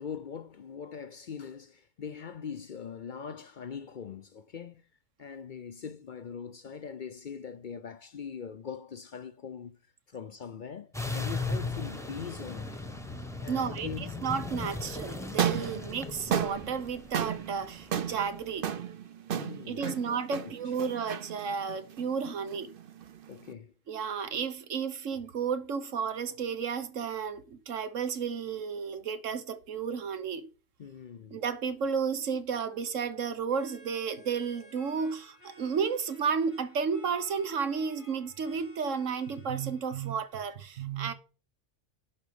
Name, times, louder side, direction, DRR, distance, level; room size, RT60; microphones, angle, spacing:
voice 1, 0.0-4.9 5.2-9.8 10.1-12.8 13.4-14.2 19.3-20.7 23.3-23.7 30.8-31.4, left 7 dB, 55° left, 0.6 m, -42 dB
sound 1, 10.9-18.3, left 3 dB, 5° left, 0.8 m, -37 dB
voice 2, 13.5-18.7 19.6-22.7 23.9-30.4 31.3-41.1, right 6 dB, 85° right, 1.4 m, -32 dB
sound 2, 15.3-23.5, right 9 dB, 50° right, 0.9 m, -34 dB
sound 3, 33.5-40.3, equal, 65° right, 6.0 m, -56 dB
11.0 x 4.4 x 6.9 m
omnidirectional pair, 1.3 m